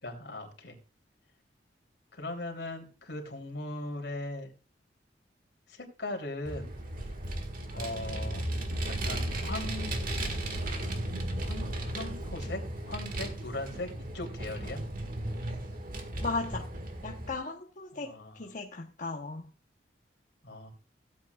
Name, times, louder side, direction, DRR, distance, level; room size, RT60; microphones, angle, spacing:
voice 1, 0.0-0.8 2.1-4.5 5.7-6.7 7.7-8.4 8.9-9.9 11.4-14.8 18.0-18.5 20.4-20.7, left 2 dB, 75° left, 3.1 m, -39 dB
Vehicle, 6.5-17.3, right 1 dB, 50° right, 1.7 m, -35 dB
voice 2, 16.2-16.7 17.0-19.4, left 3 dB, 50° left, 1.0 m, -36 dB
16.5 x 8.7 x 2.3 m
head